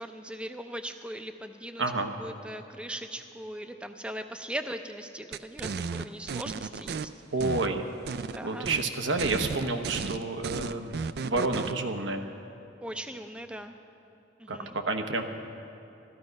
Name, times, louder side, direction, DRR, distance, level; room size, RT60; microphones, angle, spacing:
voice 1, 0.0-1.8 2.2-7.1 8.3-8.7 12.8-13.7 14.4-14.8, right 1 dB, 5° right, 7 dB, 0.5 m, -39 dB
voice 2, 1.8-2.1 7.3-7.8 8.4-12.2 14.5-15.2, right 3 dB, 85° right, 5 dB, 1.0 m, -29 dB
sound 1, 5.3-7.0 7.4-8.4 8.6-8.9 9.2-11.7, right 5 dB, 55° right, 0.3 m, -34 dB
14.0 x 13.0 x 5.3 m, 2.9 s
head